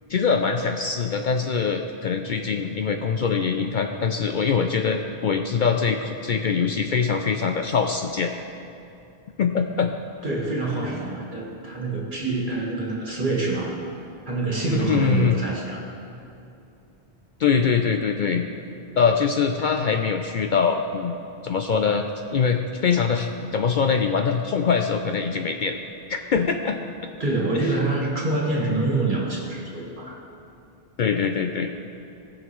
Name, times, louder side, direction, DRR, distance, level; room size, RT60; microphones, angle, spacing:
voice 1, 0.1-8.3 9.4-9.9 14.7-15.3 17.4-18.4 19.0-21.2 21.4-22.0 22.3-25.8 26.1-26.9 31.0-31.7, left 6 dB, 60° left, 4 dB, 0.6 m, -23 dB
voice 2, 10.2-13.7 14.2-15.9 27.2-30.2, right 2 dB, 50° right, -3 dB, 1.8 m, -26 dB
18.5 x 6.4 x 3.1 m, 2.8 s
omnidirectional pair, 1.1 m